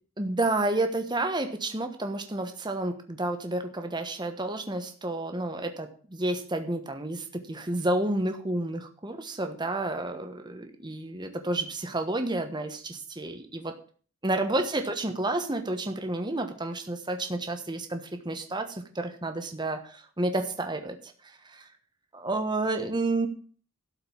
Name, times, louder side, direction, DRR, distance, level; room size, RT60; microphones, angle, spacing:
voice 1, 0.2-13.7 14.2-21.7 22.1-23.3, right 2 dB, 20° right, 6 dB, 1.2 m, -30 dB
12.5 x 5.3 x 8.7 m, 0.43 s
head